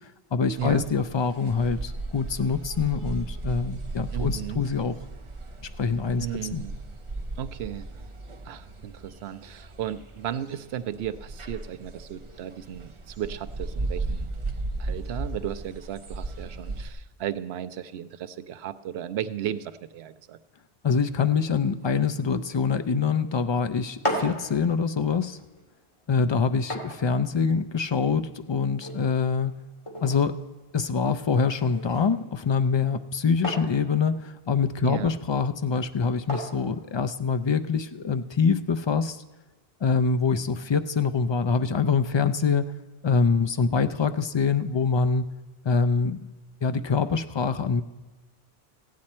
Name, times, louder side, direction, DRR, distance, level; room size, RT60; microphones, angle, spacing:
voice 1, 0.3-5.0 5.8-6.3 6.5-6.6 20.8-25.4 26.1-29.6 30.0-30.4 30.7-39.2 39.8-42.7 43.0-45.3 45.6-46.2 46.6-47.8, left 5 dB, 50° left, 11 dB, 0.3 m, -25 dB
sound 1, 0.6-16.9, right 2 dB, 35° right, 0.8 m, -36 dB
voice 2, 4.1-4.6 6.2-6.8 7.4-7.9 8.4-14.3 14.8-20.4 34.8-35.1, right 10 dB, 85° right, 12 dB, 0.9 m, -35 dB
sound 2, 23.8-37.6, equal, 30° left, 2.1 m, -39 dB
15.0 x 9.5 x 4.3 m, 1.3 s
omnidirectional pair, 1.0 m